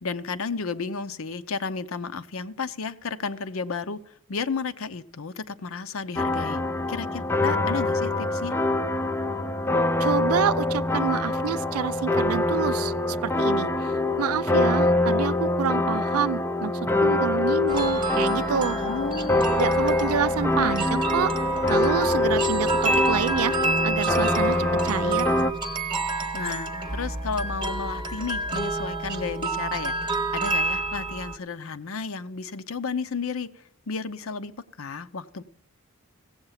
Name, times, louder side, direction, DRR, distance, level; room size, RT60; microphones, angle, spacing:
voice 1, 0.0-6.6 6.9-8.6 18.8-19.4 26.3-33.5 33.9-35.4, left 5 dB, 70° left, 0.6 m, -32 dB
sound 1, 6.2-25.5, left 2 dB, 10° left, 0.4 m, -24 dB
voice 2, 10.0-16.7 17.0-18.8 19.6-21.3 21.7-25.3, right 7 dB, 85° right, 0.4 m, -28 dB
sound 2, 17.7-31.4, right 3 dB, 20° right, 1.0 m, -29 dB
16.0 x 7.9 x 5.7 m
head